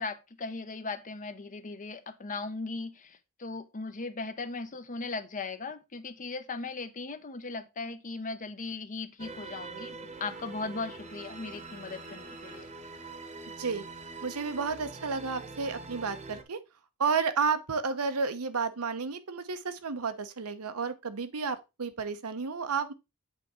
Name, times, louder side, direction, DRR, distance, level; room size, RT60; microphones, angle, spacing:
voice 1, 0.0-12.7, left 3 dB, 35° left, 0.7 m, -38 dB
sound 1, 9.2-16.4, right 3 dB, 35° right, 1.0 m, -44 dB
voice 2, 14.2-16.6 17.0-22.9, right 5 dB, 85° right, 0.9 m, -31 dB
8.3 x 3.6 x 4.3 m
head